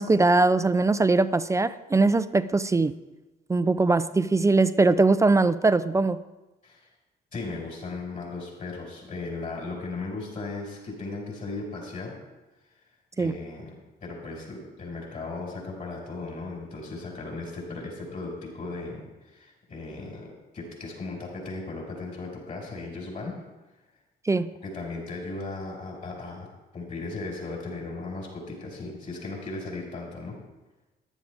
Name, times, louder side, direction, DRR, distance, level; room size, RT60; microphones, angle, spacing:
voice 1, 0.0-2.9 3.5-6.2 13.2-13.4 24.3-24.5, right 3 dB, 15° right, 14 dB, 0.4 m, -21 dB
voice 2, 7.3-12.2 13.2-23.4 24.6-30.4, left 3 dB, 45° left, -1 dB, 5.4 m, -37 dB
14.5 x 11.5 x 3.5 m, 1.1 s
cardioid pair, 100°, 19 cm